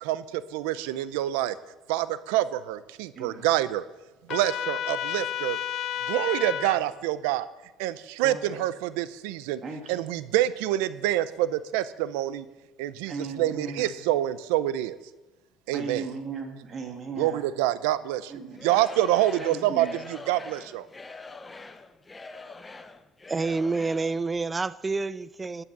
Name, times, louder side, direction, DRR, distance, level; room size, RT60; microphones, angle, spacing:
voice 1, 0.0-1.6 1.9-3.8 4.3-5.6 6.1-7.5 7.8-9.6 9.9-12.5 12.8-15.0 15.7-16.1 17.2-18.3 18.6-20.9, right 14 dB, 90° right, 16 dB, 0.6 m, -27 dB
voice 2, 3.1-3.5 8.2-8.7 9.6-10.0 13.1-14.0 15.7-17.5 18.3-18.7 19.4-19.9, right 4 dB, 40° right, 4 dB, 2.2 m, -37 dB
Trumpet, 4.3-6.8, left 10 dB, 60° left, 0.7 m, -31 dB
Singing / Crowd, 18.5-24.2, left 3 dB, 15° left, 0.8 m, -44 dB
voice 3, 23.3-25.6, right 3 dB, 20° right, 18 dB, 0.5 m, -28 dB
12.5 x 9.8 x 6.0 m, 1.1 s
supercardioid pair, 105°, 0 cm